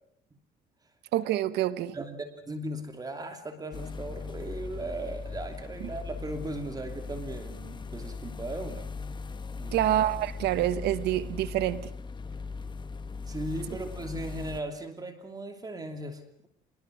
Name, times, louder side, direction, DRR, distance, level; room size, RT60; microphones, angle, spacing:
voice 1, 1.1-2.0 9.7-11.9, right 13 dB, 80° right, 1.2 m, -27 dB
voice 2, 1.9-8.9 9.6-9.9 13.3-16.5, right 1 dB, 20° right, 2.9 m, -37 dB
sound 1, 3.7-14.6, left 4 dB, 25° left, 1.5 m, -39 dB
25.5 x 21.5 x 6.4 m
cardioid pair, 110°, 17 cm